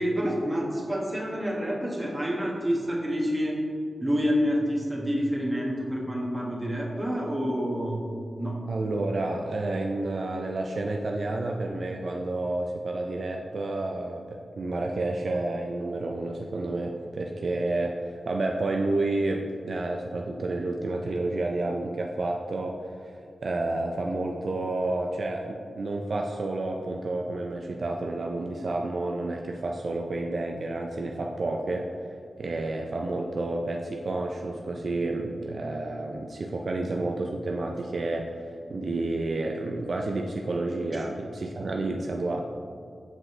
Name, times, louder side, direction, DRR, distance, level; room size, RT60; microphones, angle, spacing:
voice 1, 0.0-3.6 4.0-8.0 8.4-8.6, equal, 20° right, -4 dB, 1.5 m, -28 dB
voice 2, 8.7-23.2 23.4-42.4, right 2 dB, 60° right, 1 dB, 0.4 m, -30 dB
7.6 x 5.1 x 3.2 m, 2.3 s
cardioid pair, 60°, 0 cm